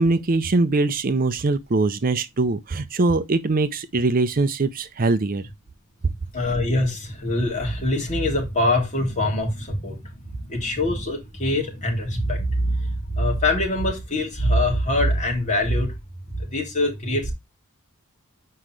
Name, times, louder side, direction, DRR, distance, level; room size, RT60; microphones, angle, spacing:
voice 1, 0.0-5.5, right 3 dB, 40° right, 0.5 m, -22 dB
voice 2, 6.3-15.9 16.3-17.3, left 1 dB, 35° left, 2.9 m, -24 dB
7.7 x 5.0 x 3.1 m
head